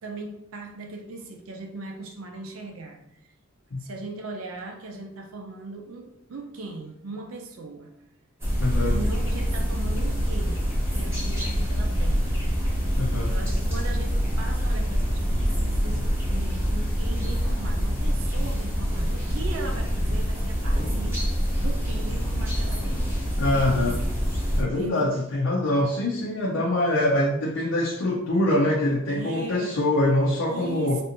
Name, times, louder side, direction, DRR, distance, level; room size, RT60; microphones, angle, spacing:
voice 1, 0.0-3.2 3.8-7.9 8.9-10.6 10.9-12.3 13.2-21.2 21.6-23.0 24.7-25.1 29.1-29.9 30.5-31.0, right 2 dB, 75° right, 3 dB, 0.5 m, -38 dB
sound 1, 8.4-24.6, equal, 15° right, 0.9 m, -25 dB
voice 2, 8.6-8.9 13.0-13.3 23.4-24.0 24.6-31.0, left 1 dB, 85° left, -3 dB, 0.5 m, -24 dB
3.3 x 2.5 x 2.9 m, 0.78 s
head